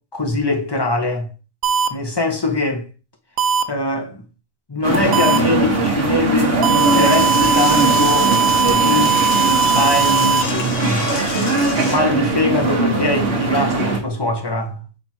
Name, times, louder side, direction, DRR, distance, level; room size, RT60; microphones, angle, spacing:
voice 1, 0.1-1.3 1.9-2.9 3.7-4.2 4.7-9.2 9.7-11.1 11.7-14.8, left 2 dB, 20° left, 1.3 m, -22 dB
sound 1, 1.6-1.9 3.4-3.6 5.1-5.4 6.6-10.4, right 6 dB, 85° right, 1.1 m, -18 dB
sound 2, 4.8-14.0, right 3 dB, 50° right, 1.5 m, -20 dB
Door / Toilet flush, 6.7-12.0, left 4 dB, 60° left, 1.3 m, -29 dB
5.0 x 4.4 x 4.4 m
omnidirectional pair, 1.4 m